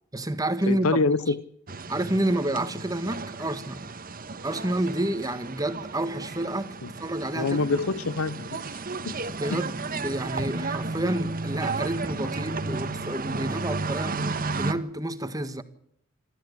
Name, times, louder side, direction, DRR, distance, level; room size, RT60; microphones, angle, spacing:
voice 1, 0.1-1.0 1.9-3.8 4.4-7.6 9.4-15.6, right 1 dB, 15° right, 1.5 m, -29 dB
voice 2, 0.7-1.4 6.8-6.9 7.3-8.7 9.0-9.2 9.5-9.6, left 3 dB, 85° left, 0.9 m, -26 dB
sound 1, 1.7-14.7, right 3 dB, 45° right, 1.5 m, -33 dB
26.5 x 13.5 x 8.2 m
head